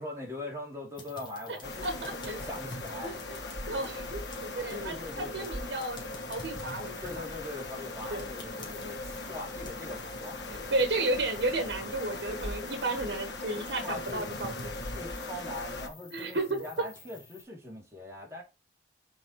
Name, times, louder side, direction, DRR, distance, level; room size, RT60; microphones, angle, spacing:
voice 1, 0.0-3.2 4.7-5.5 7.0-10.7 13.8-14.2 14.9-18.4, left 2 dB, 15° right, 2.7 m, -41 dB
sound 1, 1.0-17.4, left 2 dB, 25° left, 2.2 m, -49 dB
sound 2, 1.6-15.9, left 2 dB, 80° left, 1.4 m, -39 dB
voice 2, 1.8-2.3 3.0-3.4 3.7-7.2 8.1-8.3 10.5-14.7 16.1-16.7, right 2 dB, 75° right, 1.4 m, -33 dB
6.2 x 4.9 x 4.7 m
head